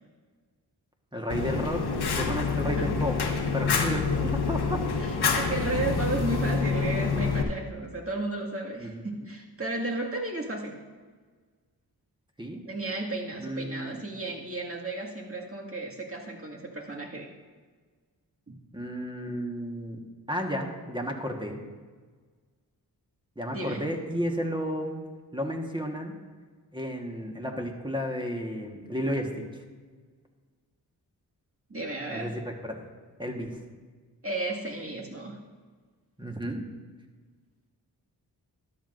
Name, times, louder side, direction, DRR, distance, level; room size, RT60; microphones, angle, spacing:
voice 1, 1.1-1.8 2.1-3.2 3.5-4.8 8.8-9.0 12.4-12.6 13.4-14.0 18.7-20.0 20.3-21.6 23.4-25.0 25.3-26.1 26.7-29.3 32.1-32.8 33.2-33.6 36.2-36.6, equal, 10° right, 1 dB, 1.4 m, -32 dB
Fire, 1.3-7.4, left 5 dB, 85° left, 1.1 m, -27 dB
voice 2, 2.7-3.0 5.0-10.8 12.7-17.3 18.5-18.6 23.5-23.9 31.7-32.3 34.2-35.4, right 2 dB, 35° right, -1 dB, 2.0 m, -33 dB
13.5 x 11.0 x 2.6 m, 1.5 s
cardioid pair, 65°, 38 cm